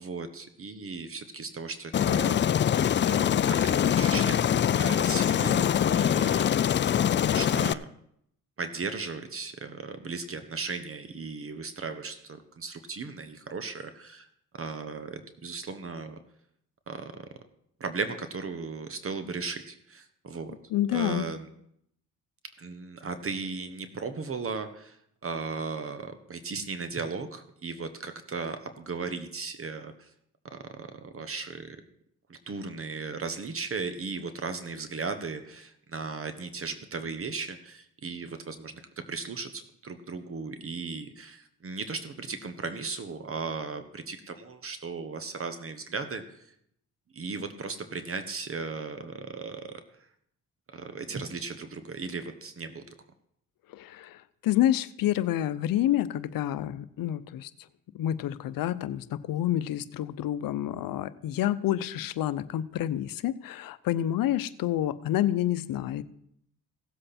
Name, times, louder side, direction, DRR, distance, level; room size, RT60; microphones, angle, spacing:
voice 1, 0.0-2.7 3.1-6.6 7.2-7.9 8.6-14.3 14.5-16.2 16.9-17.3 17.8-20.6 20.9-21.5 22.6-30.1 30.5-31.8 32.3-46.5 47.1-49.8 50.7-52.8, right 4 dB, 40° right, 9 dB, 1.2 m, -36 dB
Aircraft, 1.9-7.7, left 9 dB, 35° left, 0.4 m, -24 dB
voice 2, 20.7-21.3 53.7-54.2 54.4-57.5 57.9-66.0, left 12 dB, 75° left, 15 dB, 0.7 m, -28 dB
16.5 x 7.7 x 4.3 m, 0.72 s
cardioid pair, 80°, 35 cm